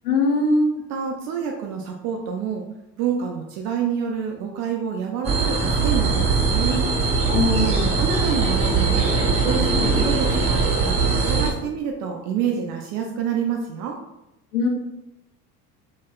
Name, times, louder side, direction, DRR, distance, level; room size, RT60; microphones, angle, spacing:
voice 1, 0.0-0.7 7.3-7.9 14.5-14.7, left 2 dB, 75° left, 1 dB, 0.7 m, -21 dB
voice 2, 0.9-2.6 3.0-6.9 8.0-9.1 9.4-11.0 11.3-14.0, right 7 dB, 40° right, 2 dB, 0.4 m, -27 dB
sound 1, 5.2-11.5, right 4 dB, 15° right, 0.9 m, -21 dB
2.9 x 2.7 x 2.2 m, 0.88 s
figure-of-eight pair, 65°, 46 cm